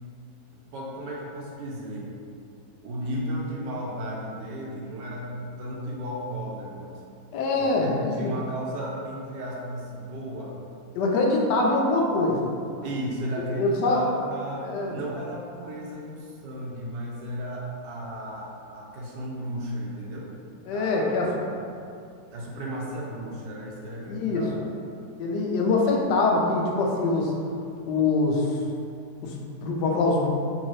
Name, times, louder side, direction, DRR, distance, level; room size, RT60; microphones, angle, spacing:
voice 1, 0.5-2.1 2.8-6.9 7.6-10.6 12.8-20.3 20.7-21.1 21.4-21.6 22.3-24.6, equal, 90° right, -3 dB, 1.3 m, -34 dB
voice 2, 7.3-8.3 11.0-12.5 13.6-14.0 14.6-15.0 20.7-21.3 24.1-24.4 25.2-27.3 27.9-28.5 29.2-30.3, left 3 dB, 85° left, -1 dB, 1.2 m, -24 dB
3.9 x 2.7 x 3.0 m, 2.5 s
omnidirectional pair, 1.8 m